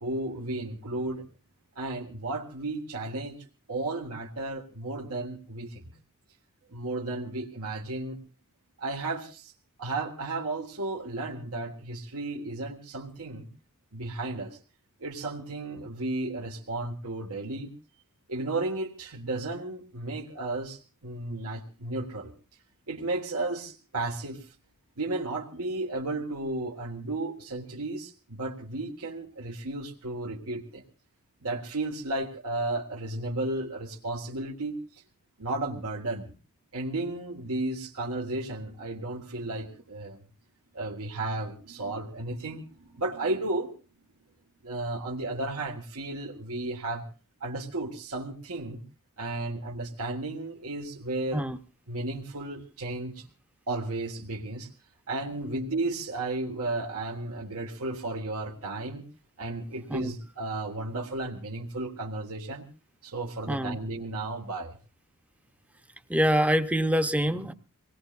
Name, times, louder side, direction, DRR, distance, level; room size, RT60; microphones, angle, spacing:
voice 1, 0.0-1.2 1.8-3.4 3.7-5.9 6.7-8.2 8.8-9.5 9.8-13.5 13.9-14.6 15.0-17.7 18.3-22.3 22.9-24.5 25.0-30.8 31.4-35.0 35.4-36.3 36.7-40.2 40.7-43.7 44.6-47.1 47.4-48.8 49.2-51.5 51.9-53.3 53.7-54.7 55.1-59.1 59.4-62.7 63.0-64.7, right 2 dB, 75° right, -1 dB, 1.7 m, -33 dB
voice 2, 66.1-67.5, equal, 5° right, 8 dB, 0.8 m, -25 dB
25.5 x 19.0 x 2.5 m, 0.35 s
head